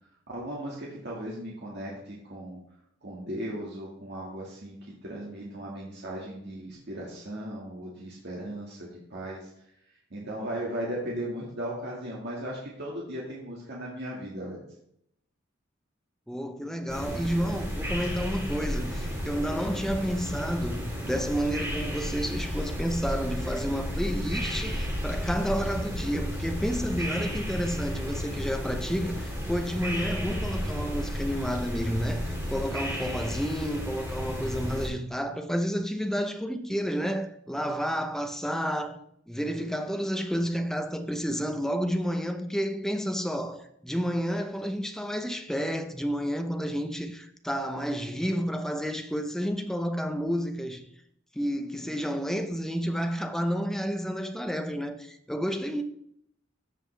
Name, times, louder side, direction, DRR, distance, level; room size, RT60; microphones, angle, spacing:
voice 1, 0.3-2.6 3.0-9.5 10.1-14.6, right 1 dB, 60° right, 1.8 m, -37 dB
voice 2, 16.3-39.0 39.3-50.8 51.3-55.8, equal, ahead, 0.6 m, -30 dB
sound 1, 16.9-34.9, equal, 15° right, 3.2 m, -33 dB
14.0 x 5.3 x 3.3 m
head